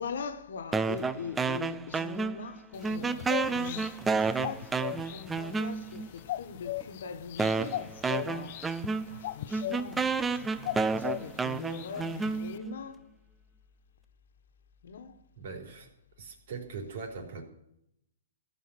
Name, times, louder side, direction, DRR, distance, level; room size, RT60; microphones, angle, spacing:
voice 1, 0.0-8.8 9.1-13.0 14.8-15.1, left 6 dB, 70° left, 1.6 m, -42 dB
sound 1, 0.7-2.6 2.8-6.1 6.8-6.9 7.4-12.8, right 4 dB, 10° right, 0.5 m, -31 dB
sound 2, 2.7-12.6, left 15 dB, 50° left, 0.5 m, -40 dB
voice 2, 15.4-15.9 16.2-17.4, right 4 dB, 60° right, 4.1 m, -41 dB
15.5 x 5.7 x 10.0 m
hypercardioid pair, 145°, 0 cm